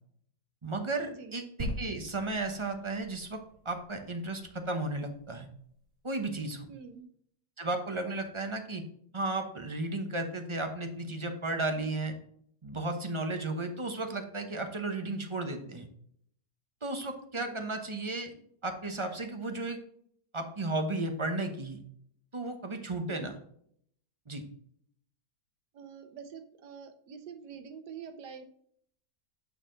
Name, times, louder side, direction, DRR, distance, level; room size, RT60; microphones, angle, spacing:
voice 1, 0.6-3.4 3.6-5.5 6.0-6.7 7.6-8.8 9.1-12.1 12.6-15.9 16.8-18.3 18.6-19.8 20.3-21.8 22.3-23.4 24.3-24.4, right 2 dB, 25° right, 5 dB, 0.8 m, -34 dB
sound 1, 1.6-5.2 5.8-5.9, equal, 60° right, 2.0 m, -41 dB
voice 2, 6.7-7.1 15.6-15.8 17.4-17.6 23.1-23.4 25.7-28.4, right 6 dB, 85° right, 8 dB, 1.5 m, -46 dB
8.8 x 4.7 x 3.8 m, 0.66 s
omnidirectional pair, 1.8 m